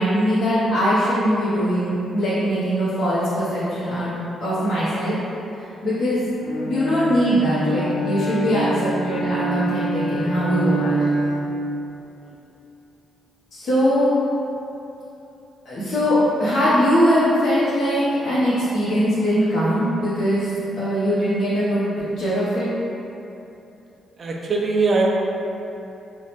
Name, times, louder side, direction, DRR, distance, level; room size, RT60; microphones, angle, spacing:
voice 1, 0.0-4.1 4.4-5.2 5.5-11.0 13.5-14.1 15.6-20.5 20.8-21.8 22.2-22.7, equal, 50° left, -12 dB, 0.8 m, -21 dB
Bowed string instrument, 6.4-11.7, right 2 dB, 80° left, 0.5 m, -26 dB
voice 2, 24.2-25.1, right 3 dB, 40° right, -1 dB, 0.3 m, -20 dB
4.4 x 2.1 x 2.9 m, 2.9 s
cardioid pair, 145°, 0 cm